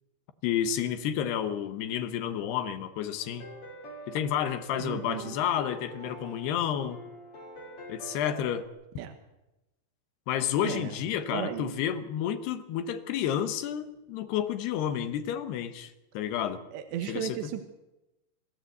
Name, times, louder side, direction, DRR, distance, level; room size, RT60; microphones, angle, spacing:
voice 1, 0.4-3.5 4.1-7.0 7.9-8.7 10.3-16.6 17.1-17.4, left 9 dB, 70° left, 3.1 m, -30 dB
sound 1, 3.2-8.7, equal, 35° left, 3.1 m, -45 dB
voice 2, 4.8-5.4 9.0-9.1 10.6-11.0 11.3-11.7 16.7-17.6, right 10 dB, 75° right, 3.3 m, -35 dB
27.0 x 13.5 x 8.1 m
omnidirectional pair, 5.1 m